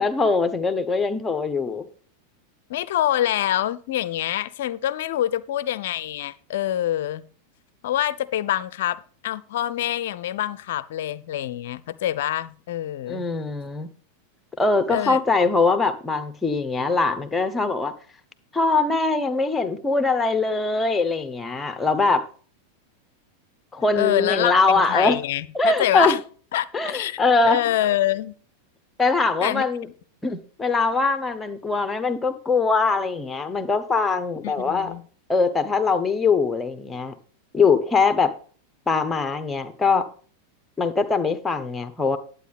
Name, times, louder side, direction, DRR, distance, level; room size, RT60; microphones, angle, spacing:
voice 1, 0.0-1.9 13.1-13.9 14.6-17.9 18.5-22.3 23.7-25.2 25.5-26.1 26.7-27.6 29.0-29.9 30.2-34.9 35.3-37.1 37.5-38.3 38.9-40.1 40.8-42.2, left 4 dB, 10° left, 1.2 m, -22 dB
voice 2, 2.7-7.2 7.8-13.3 14.9-15.2 23.9-26.2 26.5-28.4 29.4-29.6 34.4-35.0, left 12 dB, 55° left, 0.6 m, -26 dB
11.0 x 8.8 x 3.5 m
figure-of-eight pair, 90°, 0 cm